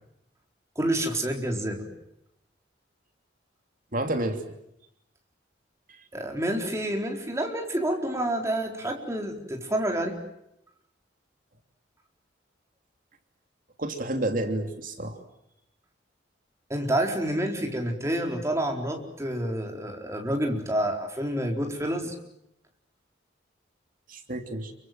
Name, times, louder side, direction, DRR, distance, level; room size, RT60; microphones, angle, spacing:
voice 1, 0.8-1.9 6.1-10.2 16.7-22.1, right 1 dB, 15° right, 2 dB, 4.2 m, -28 dB
voice 2, 3.9-4.4 13.8-15.2 24.1-24.7, right 1 dB, 45° right, 6 dB, 3.2 m, -29 dB
29.0 x 24.0 x 7.7 m, 0.79 s
head